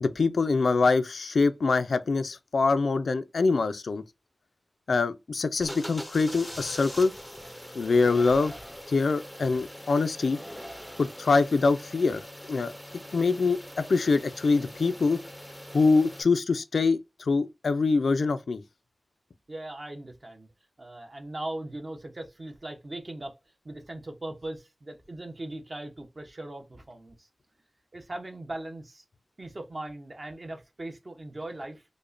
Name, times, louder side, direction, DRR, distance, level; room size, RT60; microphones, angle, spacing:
voice 1, 0.0-4.0 4.9-7.1 7.7-8.5 8.9-10.4 11.0-12.2 12.5-12.7 13.1-13.6 13.9-15.2 15.7-18.6, left 4 dB, 90° left, 0.4 m, -24 dB
sound 1, 5.6-16.2, equal, 5° left, 0.5 m, -42 dB
voice 2, 19.5-20.5 20.8-23.4 23.6-27.3 27.9-29.0 29.4-31.8, right 1 dB, 40° right, 0.7 m, -39 dB
5.0 x 2.1 x 2.5 m
wide cardioid pair, 95°, 0 cm